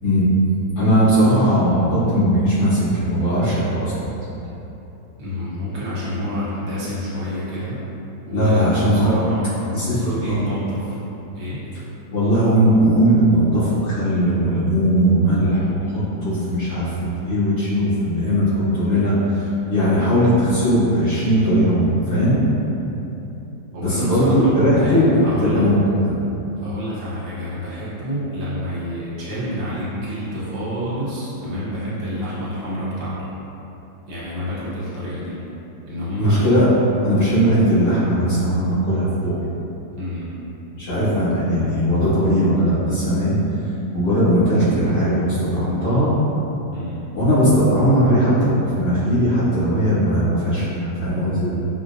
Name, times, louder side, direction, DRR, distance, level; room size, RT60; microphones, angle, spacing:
voice 1, 0.8-4.2 8.3-9.2 9.7-10.4 12.1-16.9 17.2-22.4 23.8-26.1 36.2-36.7 37.0-39.3 40.8-43.4 43.9-46.1 47.1-51.5, equal, 70° left, -15 dB, 2.2 m, -18 dB
voice 2, 5.2-7.8 8.3-11.0 11.3-11.7 15.4-15.7 23.7-25.7 26.6-33.3 34.1-35.4 35.9-36.5 40.0-40.3 46.7-47.0, equal, 70° right, -9 dB, 1.4 m, -28 dB
5.3 x 2.0 x 2.5 m, 3.0 s
omnidirectional pair, 1.9 m